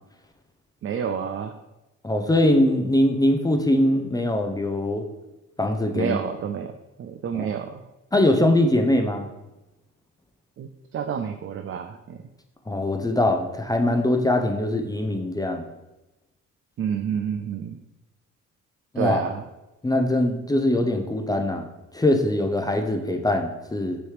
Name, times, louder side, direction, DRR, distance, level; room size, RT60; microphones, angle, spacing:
voice 1, 0.8-1.6 5.9-6.7 7.0-7.8 10.6-12.2 16.8-17.8 19.0-19.4, right 7 dB, 45° right, 7 dB, 0.4 m, -29 dB
voice 2, 2.0-5.1 5.6-6.2 7.3-7.5 8.1-9.3 12.7-15.7 18.9-19.2 19.8-24.0, left 1 dB, 15° left, 4 dB, 0.6 m, -22 dB
6.2 x 3.1 x 4.9 m, 0.98 s
cardioid pair, 90°, 30 cm